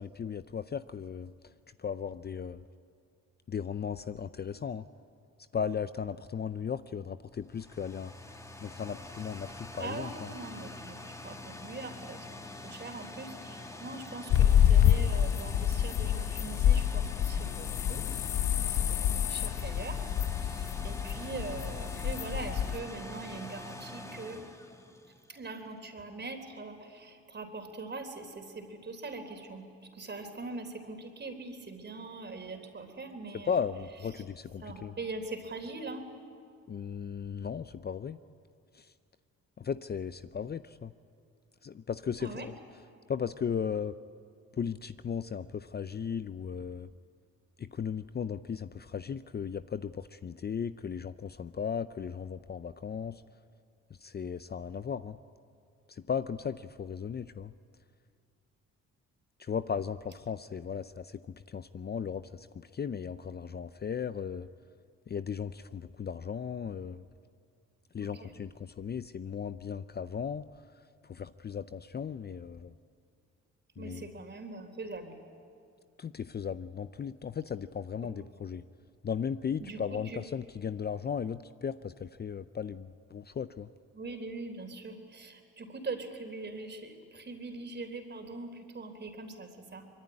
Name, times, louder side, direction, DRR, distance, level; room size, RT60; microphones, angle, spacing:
voice 1, 0.0-1.3 1.8-2.6 3.5-4.9 5.5-8.1 8.6-10.3 33.5-34.9 36.7-38.2 38.7-38.9 39.6-40.9 41.6-42.5 43.1-43.9 44.5-46.9 47.6-53.2 54.0-55.2 55.9-57.5 59.4-61.2 61.5-64.5 65.1-67.0 67.9-70.6 71.0-72.7 73.8-74.1 76.0-78.6 79.0-83.7, left 7 dB, 35° left, 13 dB, 0.6 m, -36 dB
sound 1, 7.3-25.4, left 2 dB, 10° left, 2.1 m, -45 dB
voice 2, 9.8-12.3 12.6-18.1 18.5-24.4 25.3-33.6 34.1-34.2 34.6-36.0 42.2-42.5 68.0-68.4 73.8-75.2 78.0-78.2 79.6-80.2 83.9-89.9, right 3 dB, 35° right, 6 dB, 3.7 m, -42 dB
sound 2, 14.3-22.8, left 10 dB, 75° left, 0.9 m, -27 dB
24.0 x 22.5 x 9.8 m, 2.3 s
cardioid pair, 90°, 30 cm